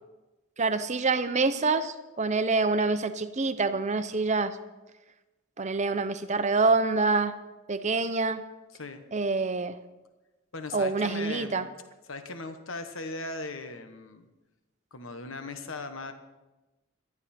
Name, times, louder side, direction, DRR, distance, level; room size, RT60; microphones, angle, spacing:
voice 1, 0.6-4.6 5.6-7.3 7.7-8.4 9.1-9.8 10.7-11.7, right 3 dB, 35° right, 11 dB, 0.8 m, -26 dB
voice 2, 10.5-11.6 12.1-14.3 14.9-16.1, left 3 dB, 75° left, 8 dB, 1.2 m, -38 dB
18.0 x 12.5 x 4.3 m, 1.1 s
head